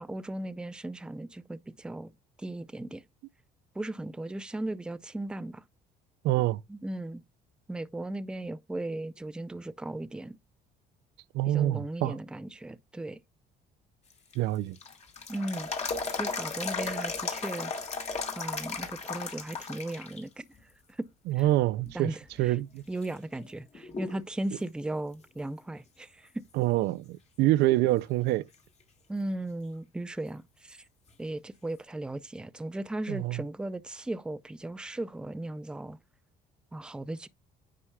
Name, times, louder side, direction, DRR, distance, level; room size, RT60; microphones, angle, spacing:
voice 1, 0.0-2.1 2.4-3.0 3.8-5.6 6.7-7.2 7.7-10.4 11.5-13.2 15.3-15.7 16.1-17.7 18.4-20.4 20.9-21.1 21.4-21.5 21.9-22.6 22.9-26.4 29.1-30.8 31.2-36.0 36.7-37.3, right 1 dB, 5° right, 0.4 m, -37 dB
voice 2, 6.2-6.6 11.3-12.2 14.4-14.8 21.3-22.1 22.4-22.8 26.6-28.5 33.1-33.4, right 16 dB, 80° right, 0.4 m, -26 dB
sound 1, 14.1-20.2 20.6-20.7 21.4-21.9 22.5-22.6 23.0-24.3 24.6-24.7 28.0-28.1 31.1-31.2, left 4 dB, 40° left, 1.6 m, -35 dB
9.7 x 5.6 x 2.2 m
cardioid pair, 110°, 17 cm